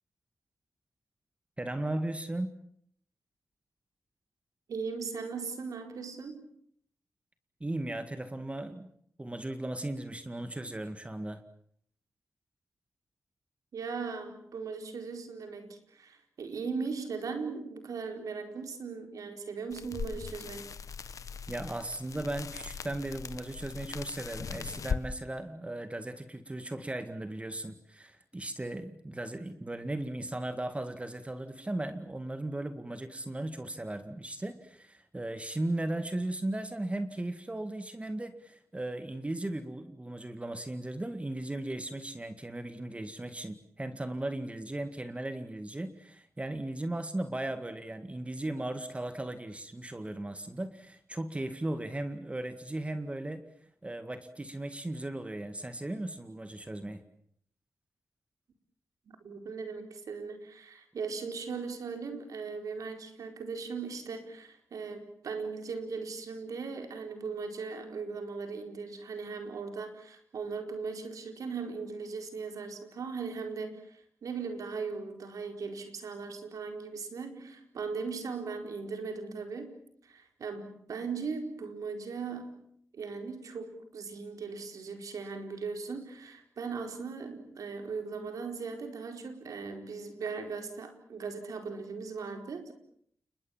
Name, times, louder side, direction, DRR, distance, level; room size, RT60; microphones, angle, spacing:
voice 1, 1.6-2.6 7.6-8.9 9.2-11.4 21.5-53.4 53.8-57.0, right 1 dB, 20° right, 10 dB, 2.0 m, -37 dB
voice 2, 4.7-6.5 13.7-20.7 59.1-82.6 82.9-92.7, right 5 dB, 85° right, 6 dB, 4.5 m, -38 dB
sound 1, 19.7-25.0, left 6 dB, 75° left, 1.5 m, -39 dB
29.0 x 21.5 x 7.4 m, 0.67 s
cardioid pair, 70°, 6 cm